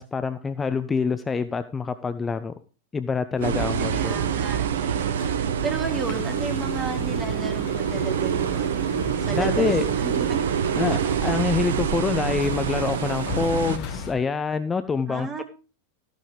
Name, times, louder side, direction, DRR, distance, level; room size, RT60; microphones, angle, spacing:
voice 1, 0.0-2.5 2.9-4.3 9.3-9.9 10.8-15.4, left 5 dB, 15° left, 11 dB, 0.7 m, -26 dB
sound 1, 3.4-14.1, left 4 dB, 45° left, 2.3 m, -37 dB
sound 2, 3.4-13.8, right 8 dB, 60° right, 0.8 m, -26 dB
voice 2, 3.8-5.2 5.6-8.9 9.2-9.7 10.0-10.4 15.1-15.4, right 4 dB, 20° right, 5 dB, 3.0 m, -33 dB
14.0 x 11.5 x 3.3 m, 0.33 s
figure-of-eight pair, 90°, 0 cm